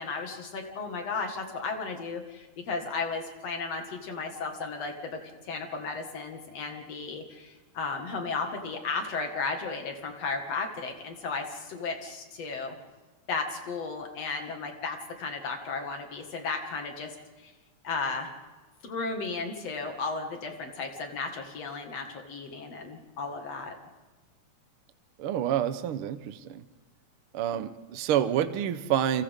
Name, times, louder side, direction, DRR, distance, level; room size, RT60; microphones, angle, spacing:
voice 1, 0.0-12.7 13.3-17.1 17.4-17.5 17.8-18.3 18.8-23.8, left 4 dB, 60° left, 3 dB, 3.0 m, -34 dB
voice 2, 25.2-26.6 27.3-29.2, right 10 dB, 65° right, 10 dB, 1.4 m, -28 dB
29.5 x 25.0 x 3.7 m, 1.2 s
omnidirectional pair, 3.4 m